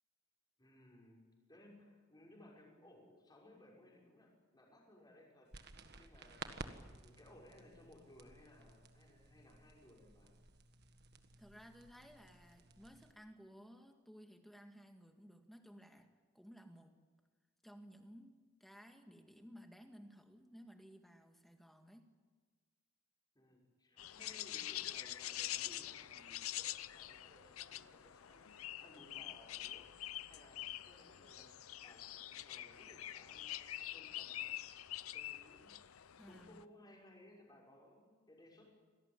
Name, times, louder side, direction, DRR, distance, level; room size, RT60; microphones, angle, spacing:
voice 1, 0.6-5.5 6.0-6.5 6.9-10.3 23.3-28.5 28.8-29.9 30.3-34.5 35.1-35.8 36.1-38.6, left 1 dB, 20° left, -2 dB, 6.3 m, -62 dB
sound 1, 5.5-13.1, right 3 dB, 50° right, 1.7 m, -54 dB
voice 2, 11.4-16.1 16.3-16.9 17.6-22.1 36.2-36.6, equal, ahead, 4 dB, 2.0 m, -57 dB
sound 2, 24.0-36.6, left 13 dB, 85° left, 0.7 m, -46 dB
26.0 x 18.0 x 9.3 m, 1.4 s
head